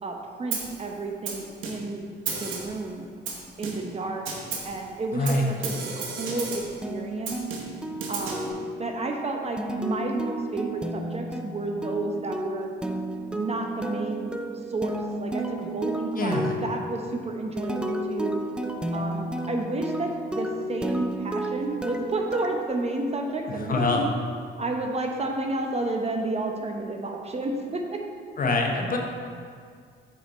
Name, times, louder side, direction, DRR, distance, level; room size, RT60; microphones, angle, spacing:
voice 1, 0.0-2.1 2.4-3.1 3.6-7.4 8.1-12.7 13.3-18.4 18.9-24.1 24.6-28.0, right 2 dB, 30° right, 2 dB, 0.8 m, -31 dB
Snare drum, 0.5-0.8 1.3-2.0 2.3-2.8 3.3-4.0 4.3-4.8 5.3-6.8 7.3-8.5, right 5 dB, 80° right, 1.1 m, -34 dB
voice 2, 5.1-5.5 16.2-16.5 23.5-24.0 28.4-29.0, left 2 dB, 45° left, 1 dB, 1.0 m, -25 dB
sound 1, 6.8-23.5, right 1 dB, 5° right, 0.4 m, -33 dB
6.4 x 5.7 x 4.2 m, 2.1 s
cardioid pair, 90°, 20 cm